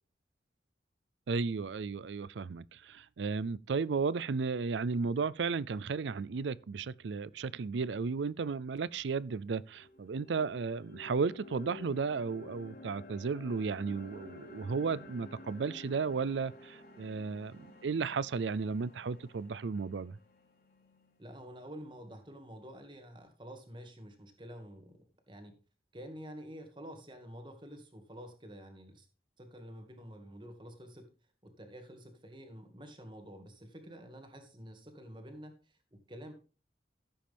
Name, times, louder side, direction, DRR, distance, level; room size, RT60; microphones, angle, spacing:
voice 1, 1.3-20.2, right 5 dB, 80° right, 0.4 m, -34 dB
sound 1, 8.8-8.9 9.3-21.4, left 3 dB, 55° left, 3.3 m, -52 dB
voice 2, 21.2-25.0 25.3-25.5 25.9-29.1 29.4-31.1 31.4-36.3, equal, 25° right, 1.9 m, -49 dB
14.5 x 7.7 x 3.5 m
head